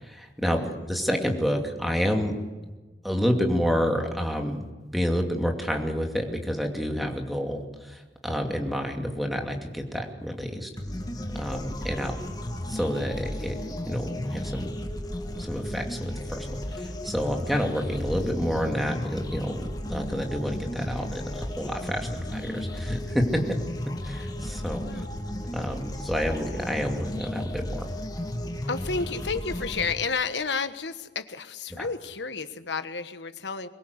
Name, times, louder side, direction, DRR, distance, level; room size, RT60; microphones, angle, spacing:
voice 1, 0.1-2.4 3.0-4.6 4.9-10.7 11.3-12.1 12.7-14.7 15.4-23.6 24.0-24.8 25.5-27.8 31.8-31.9, equal, ahead, 3 dB, 2.6 m, -29 dB
sound 1, 10.8-29.9, left 1 dB, 20° left, 1.7 m, -34 dB
voice 2, 24.8-25.2 28.7-33.7, left 4 dB, 70° left, 11 dB, 1.4 m, -31 dB
23.0 x 20.5 x 8.1 m, 1.2 s
head